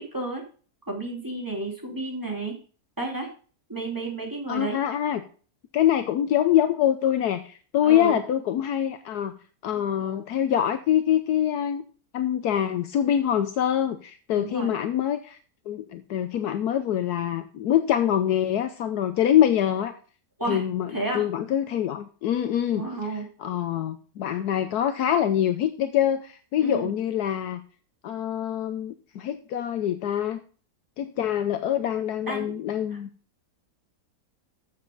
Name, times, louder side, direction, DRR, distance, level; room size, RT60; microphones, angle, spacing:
voice 1, 0.1-0.4 0.9-2.5 3.0-3.3 3.7-4.8 7.8-8.2 14.3-14.7 20.4-20.6 20.9-21.3 22.7-23.2 26.6-26.9 32.3-32.5 32.9-33.0, right 2 dB, 10° right, 0 dB, 2.8 m, -31 dB
voice 2, 4.5-5.2 5.7-9.3 9.6-11.8 12.1-15.4 15.7-20.0 20.5-27.6 28.0-30.4 31.0-33.1, left 10 dB, 75° left, 9 dB, 1.2 m, -25 dB
13.5 x 7.3 x 3.9 m, 0.39 s
omnidirectional pair, 1.7 m